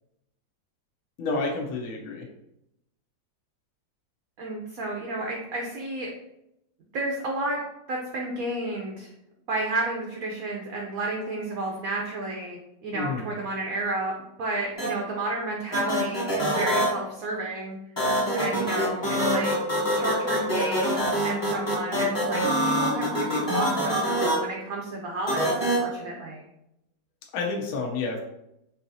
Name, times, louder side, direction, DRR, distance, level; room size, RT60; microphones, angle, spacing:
voice 1, 1.2-2.2 12.9-13.3 27.3-28.2, left 3 dB, 65° left, 0 dB, 0.9 m, -29 dB
voice 2, 4.4-6.1 6.9-7.6 7.9-9.1 9.5-14.1 14.4-17.8 18.3-19.5 19.9-26.4, right 2 dB, 70° right, 0 dB, 0.8 m, -31 dB
sound 1, 14.8-14.9 15.7-16.9 18.0-24.3 25.3-25.8, equal, 20° left, 0.9 m, -25 dB
4.6 x 2.8 x 2.6 m, 0.84 s
omnidirectional pair, 2.0 m